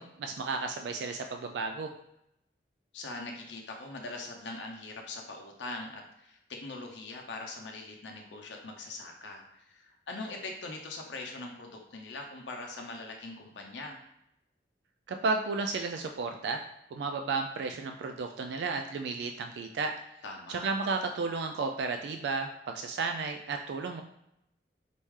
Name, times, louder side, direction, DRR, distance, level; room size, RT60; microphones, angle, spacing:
voice 1, 0.0-1.9 15.1-16.6 16.9-19.9 20.5-24.0, right 4 dB, 75° right, 5 dB, 0.3 m, -33 dB
voice 2, 2.9-14.0 20.2-20.7, left 2 dB, 85° left, 1 dB, 0.6 m, -42 dB
4.1 x 3.1 x 3.5 m, 0.79 s
head